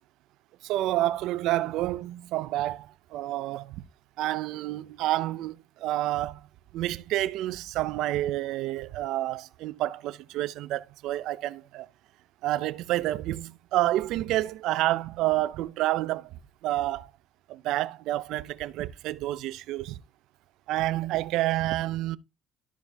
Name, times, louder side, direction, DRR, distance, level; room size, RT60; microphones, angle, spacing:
voice 1, 0.6-3.8 4.2-6.4 6.7-11.9 12.4-16.3 16.6-17.1 17.5-20.0 20.7-22.2, right 15 dB, 75° right, 0.6 m, -29 dB
13.5 x 4.4 x 3.4 m
cardioid pair, 105°, 0 cm